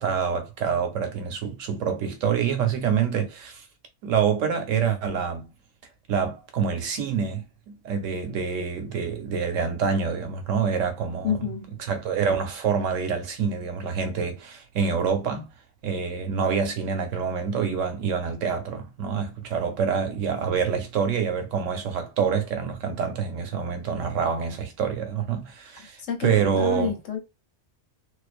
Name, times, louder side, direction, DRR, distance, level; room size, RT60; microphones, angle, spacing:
voice 1, 0.0-3.6 4.0-5.5 6.1-11.5 11.9-15.5 15.8-26.9, right 6 dB, 90° right, 1.0 m, -26 dB
voice 2, 11.2-11.7 25.8-27.2, left 7 dB, 85° left, 1.1 m, -29 dB
2.4 x 2.2 x 2.4 m
omnidirectional pair, 1.3 m